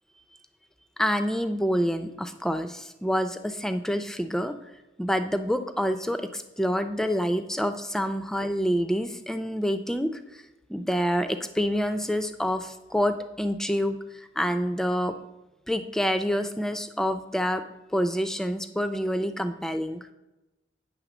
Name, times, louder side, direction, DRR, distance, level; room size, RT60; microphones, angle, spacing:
voice 1, 1.0-4.5 5.0-10.4 10.7-15.1 15.7-17.6 17.9-20.1, equal, 5° left, 9 dB, 0.4 m, -27 dB
9.1 x 3.6 x 6.0 m, 1.0 s
head